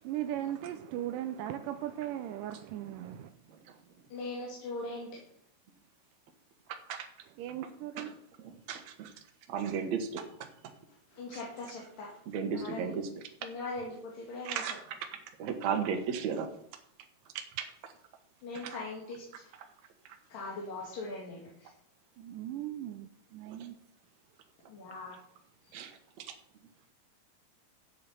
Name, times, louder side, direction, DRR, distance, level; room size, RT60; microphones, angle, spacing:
voice 1, 0.0-3.3 7.4-8.1 22.2-23.7, right 12 dB, 85° right, 2.3 m, -38 dB
voice 2, 4.1-5.2 11.1-12.1 12.6-12.9 13.4-14.6 18.4-19.2 20.3-21.7 24.7-25.2, left 3 dB, 85° left, 4.0 m, -40 dB
voice 3, 6.7-7.1 8.0-9.1 9.5-10.2 12.3-13.1 14.4-15.0 15.4-16.5 17.3-17.7 18.5-18.8 25.7-25.9 26.2-26.4, right 7 dB, 60° right, 2.5 m, -35 dB
13.5 x 9.0 x 4.4 m
omnidirectional pair, 3.8 m